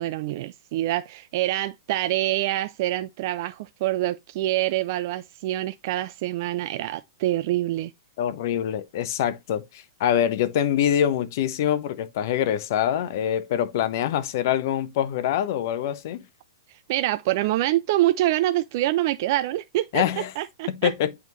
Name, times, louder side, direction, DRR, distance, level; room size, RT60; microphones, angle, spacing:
voice 1, 0.0-7.9 16.7-20.9, right 15 dB, 50° right, 0.4 m, -26 dB
voice 2, 8.2-16.2 19.9-20.3 20.8-21.1, left 10 dB, 55° left, 0.8 m, -24 dB
9.1 x 3.6 x 3.1 m
hypercardioid pair, 120°, 2 cm